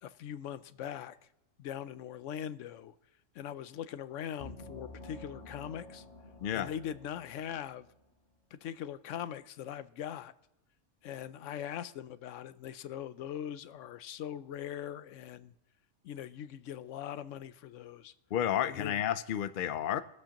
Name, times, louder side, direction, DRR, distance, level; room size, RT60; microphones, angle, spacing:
voice 1, 0.0-1.2 1.6-2.9 3.3-6.0 6.5-7.9 8.5-10.3 11.0-15.5 16.0-18.1 18.7-19.0, left 10 dB, 80° left, 14 dB, 0.9 m, -41 dB
sound 1, 4.4-7.9, left 2 dB, 35° left, 1.5 m, -50 dB
voice 2, 18.3-20.0, left 10 dB, 55° left, 11 dB, 0.6 m, -31 dB
22.0 x 7.7 x 2.9 m, 0.87 s
omnidirectional pair, 1.3 m